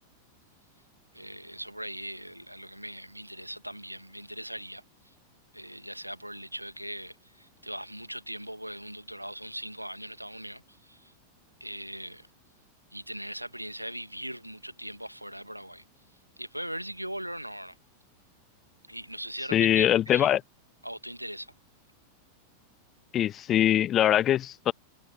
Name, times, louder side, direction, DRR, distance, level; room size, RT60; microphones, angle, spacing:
voice 1, 1.1-5.1 5.5-11.1 11.6-12.3 12.9-15.8 16.4-17.8 18.9-20.4 20.8-21.5, equal, 90° right, 1.7 m, -40 dB
voice 2, 19.5-20.4 23.1-24.7, left 11 dB, 30° left, 0.8 m, -22 dB
figure-of-eight pair, 90°, 0 cm